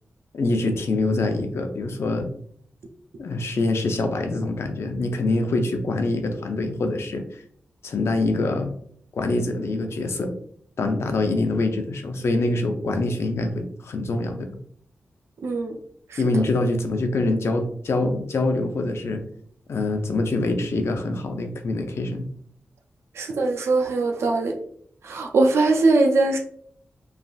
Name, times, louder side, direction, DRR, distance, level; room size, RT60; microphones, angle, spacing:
voice 1, 0.3-2.3 3.2-7.4 7.8-8.7 9.1-10.3 10.8-14.6 16.2-19.2 19.7-22.3, left 2 dB, 75° left, 5 dB, 0.5 m, -25 dB
voice 2, 15.4-15.8 16.1-16.4 23.1-24.6 25.0-26.4, right 3 dB, 85° right, 2 dB, 0.4 m, -21 dB
3.2 x 2.5 x 2.2 m, 0.63 s
cardioid pair, 60°, 4 cm